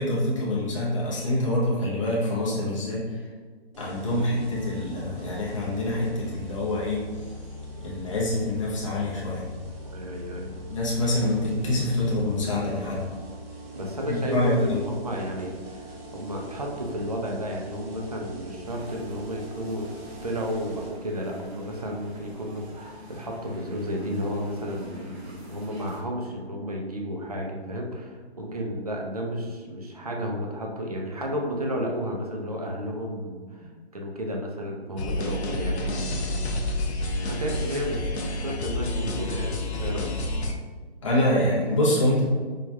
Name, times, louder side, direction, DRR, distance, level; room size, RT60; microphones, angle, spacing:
voice 1, 0.0-3.2 3.8-7.0 7.8-9.4 10.7-13.0 14.1-14.8 33.6-33.7 41.0-42.2, left 1 dB, 30° left, -5 dB, 0.6 m, -26 dB
sound 1, 3.7-20.9, equal, 65° right, 1.1 m, -41 dB
voice 2, 9.9-10.5 13.7-19.9 20.2-35.9 37.2-40.1, equal, 35° right, 0 dB, 0.4 m, -32 dB
sound 2, 18.7-26.0, equal, 80° right, 1.0 m, -46 dB
sound 3, 35.0-40.5, left 1 dB, 80° left, 0.7 m, -29 dB
4.6 x 2.6 x 2.3 m, 1.5 s
hypercardioid pair, 175°, 32 cm